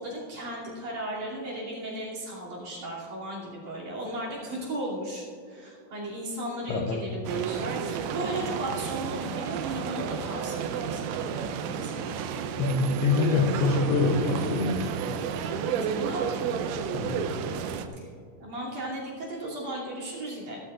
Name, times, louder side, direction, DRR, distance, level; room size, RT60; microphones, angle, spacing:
voice 1, 0.0-12.1 15.4-16.3 18.0-18.1 18.4-20.6, right 1 dB, 45° right, -6 dB, 3.8 m, -36 dB
voice 2, 6.7-7.0 12.6-15.0 16.9-17.2, left 4 dB, 75° left, 1 dB, 2.4 m, -25 dB
sound 1, 7.3-17.9, right 7 dB, 80° right, 2.8 m, -31 dB
18.0 x 13.5 x 2.5 m, 2.3 s
omnidirectional pair, 5.5 m